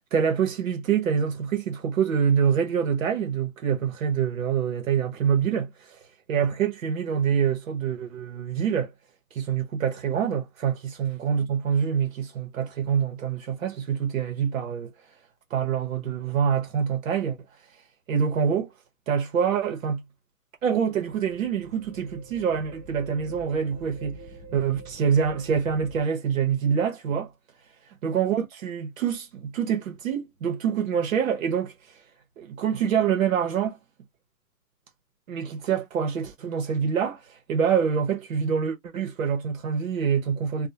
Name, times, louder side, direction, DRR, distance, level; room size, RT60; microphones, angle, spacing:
voice 1, 0.1-6.0 6.3-8.9 9.3-14.9 15.5-17.4 18.1-18.7 19.1-20.0 20.6-24.2 24.5-27.3 28.0-32.0 32.4-33.8 35.3-40.7, right 7 dB, 65° right, 0.9 m, -26 dB
sound 1, 20.9-26.0, right 2 dB, 10° left, 1.0 m, -46 dB
2.5 x 2.1 x 2.7 m
hypercardioid pair, 165°, 43 cm